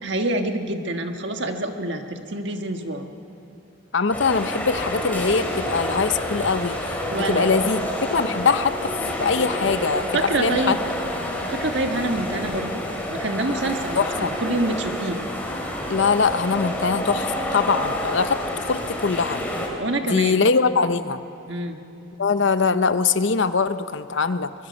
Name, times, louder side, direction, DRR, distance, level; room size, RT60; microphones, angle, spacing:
voice 1, 0.0-3.1 7.1-7.5 10.1-10.8 11.5-12.8 13.1-14.1 14.4-15.2 19.8-20.4 21.5-21.8, right 2 dB, 60° right, 5 dB, 1.5 m, -26 dB
voice 2, 3.9-8.9 9.2-10.8 13.9-14.4 15.9-18.4 18.7-19.4 20.1-21.2 22.2-24.5, left 5 dB, 65° left, 12 dB, 0.7 m, -22 dB
sound 1, 4.1-19.7, left 1 dB, 10° left, 2.7 m, -28 dB
24.0 x 21.5 x 5.4 m, 2.9 s
head